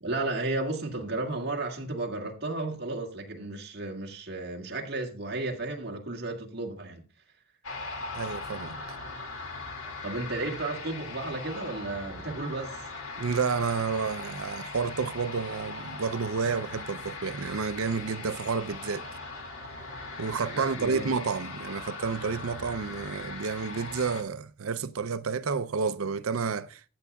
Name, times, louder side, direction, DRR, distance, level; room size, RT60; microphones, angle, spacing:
voice 1, 0.0-7.0 10.0-12.8 20.5-21.1, right 2 dB, 50° right, 1.8 m, -33 dB
sound 1, 7.6-24.2, left 3 dB, 85° left, 2.2 m, -40 dB
voice 2, 8.1-8.8 13.2-19.1 20.2-26.8, right 5 dB, 80° right, 0.6 m, -30 dB
14.0 x 8.1 x 2.3 m
head